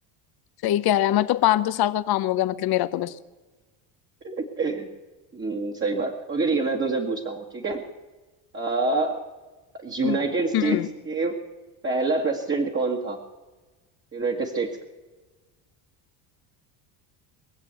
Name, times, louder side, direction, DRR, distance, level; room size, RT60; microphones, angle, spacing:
voice 1, 0.6-3.1 10.0-10.2 10.5-10.9, left 13 dB, 50° left, 13 dB, 0.9 m, -23 dB
voice 2, 4.2-4.9 5.3-7.8 8.5-9.2 9.8-11.4 11.8-13.2 14.1-14.8, right 3 dB, 25° right, 0 dB, 1.8 m, -26 dB
22.5 x 7.5 x 8.1 m, 1.2 s
supercardioid pair, 95°, 48 cm